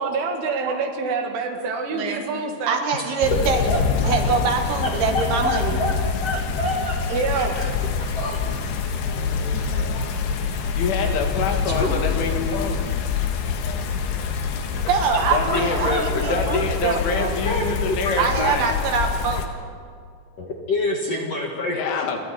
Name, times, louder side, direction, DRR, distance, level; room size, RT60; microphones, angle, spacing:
voice 1, 0.0-2.8 7.1-7.6 9.7-10.0, right 4 dB, 90° right, 4 dB, 4.5 m, -27 dB
voice 2, 2.7-3.7 4.0-5.8 14.7-17.4 18.1-19.5 21.1-21.3, right 5 dB, 65° right, 4 dB, 3.4 m, -24 dB
sound 1, 3.2-19.5, left 6 dB, 65° left, 3.3 m, -26 dB
voice 3, 4.8-5.9 6.2-7.0 7.3-7.7 8.1-8.4 11.7-12.0 15.5-15.6 15.9-16.0 16.3-16.6 17.4-18.5 20.4-22.0, left 1 dB, 50° left, 0 dB, 2.0 m, -27 dB
voice 4, 10.8-12.9 15.3-18.8 21.7-22.2, left 5 dB, 85° left, 3 dB, 4.7 m, -26 dB
30.0 x 23.5 x 4.4 m, 2.2 s
omnidirectional pair, 5.4 m